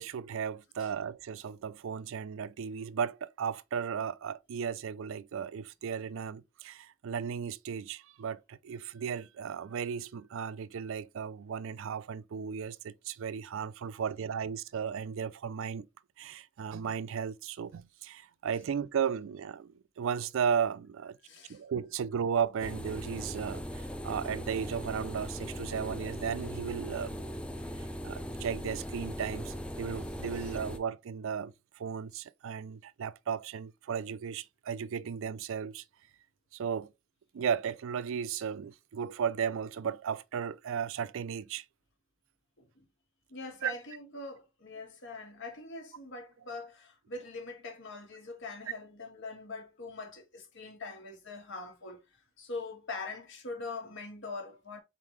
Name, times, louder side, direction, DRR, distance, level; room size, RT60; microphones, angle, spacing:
voice 1, 0.0-15.9 16.2-21.2 21.5-27.3 27.7-35.8 36.5-36.9 37.3-41.6 43.6-43.7, right 7 dB, 65° right, 0.4 m, -35 dB
voice 2, 21.2-21.6 30.3-30.5 42.6-42.9 43.3-52.0 52.4-54.8, left 3 dB, 65° left, 1.5 m, -43 dB
sound 1, 22.6-30.8, equal, 5° left, 0.5 m, -39 dB
4.3 x 3.8 x 3.1 m
head